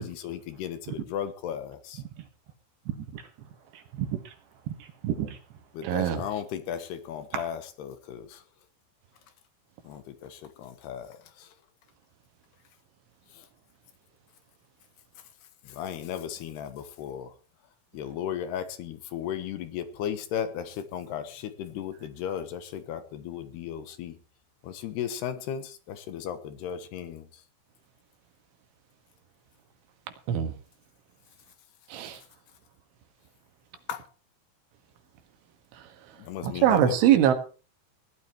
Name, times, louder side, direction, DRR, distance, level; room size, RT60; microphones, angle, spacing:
voice 1, 0.0-2.0 5.7-8.4 9.8-11.5 13.3-13.4 15.7-17.3 17.9-24.2 24.6-27.3 33.9-34.0 36.2-36.9, left 9 dB, 70° left, 3.0 m, -35 dB
voice 2, 2.0-2.3 2.9-5.9 7.3-7.4, right 10 dB, 70° right, 3.6 m, -36 dB
voice 3, 5.8-6.2 30.3-30.5 31.9-32.2 35.7-35.9 36.4-37.3, right 10 dB, 85° right, 4.2 m, -22 dB
17.5 x 12.0 x 4.5 m
omnidirectional pair, 5.4 m